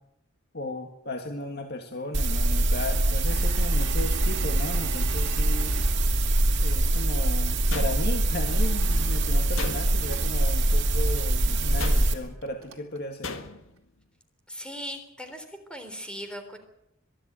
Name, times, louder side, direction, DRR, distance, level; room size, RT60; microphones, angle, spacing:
voice 1, 0.5-5.8 6.6-13.4, left 1 dB, 55° left, 4 dB, 1.9 m, -35 dB
sound 1, 2.1-12.1, right 1 dB, 60° right, 2.6 m, -24 dB
Engine / Mechanisms, 3.3-7.0 8.5-11.4 12.1-12.2 12.4-13.0, right 4 dB, 80° right, 2.4 m, -44 dB
sound 2, 7.7-8.4 9.5-10.2 11.8-12.4 13.2-13.8, left 4 dB, 80° left, 1.8 m, -37 dB
voice 2, 14.5-16.6, equal, 5° left, 7 dB, 3.6 m, -39 dB
23.0 x 12.5 x 9.1 m, 0.83 s
head